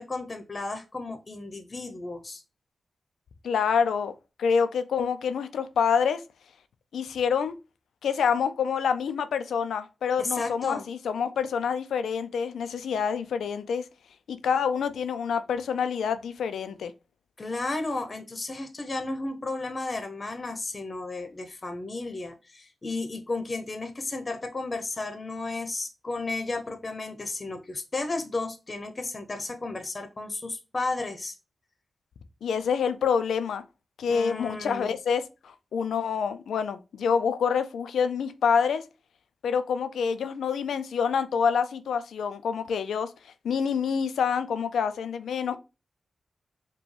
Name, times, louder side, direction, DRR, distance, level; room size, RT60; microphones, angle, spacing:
voice 1, 0.0-2.4 10.2-10.9 17.4-31.4 34.1-34.9, left 3 dB, 45° left, 0.8 m, -33 dB
voice 2, 3.4-4.1 4.4-6.2 6.9-7.5 8.0-13.9 14.3-16.9 32.4-33.6 34.0-38.8 39.4-45.6, left 6 dB, 90° left, 0.4 m, -27 dB
5.0 x 2.2 x 3.3 m
cardioid pair, 45°, 0 cm